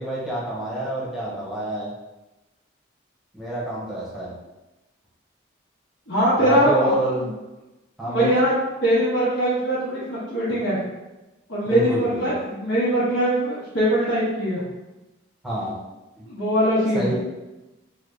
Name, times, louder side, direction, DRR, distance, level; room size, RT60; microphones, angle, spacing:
voice 1, 0.0-1.9 3.3-4.3 6.4-7.3 8.0-8.3 11.6-12.3 15.4-15.7 16.9-17.1, right 1 dB, ahead, -7 dB, 0.8 m, -27 dB
voice 2, 6.1-6.9 8.0-8.5 8.8-10.8 11.5-14.6 16.3-17.1, right 1 dB, 75° left, -10 dB, 1.1 m, -21 dB
3.3 x 2.2 x 3.6 m, 1.0 s
head